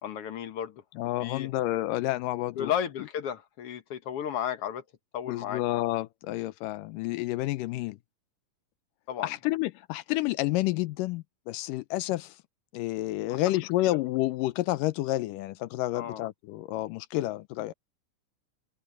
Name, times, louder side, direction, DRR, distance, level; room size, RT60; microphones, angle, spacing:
voice 1, 0.0-0.8 1.2-1.5 2.5-4.8 5.1-5.6 9.1-9.3 13.3-13.4 15.9-16.2, left 9 dB, 65° left, 1.5 m, -33 dB
voice 2, 1.0-2.7 5.3-8.0 9.2-12.4 12.7-17.7, left 17 dB, 80° left, 2.2 m, -30 dB
omnidirectional pair, 4.0 m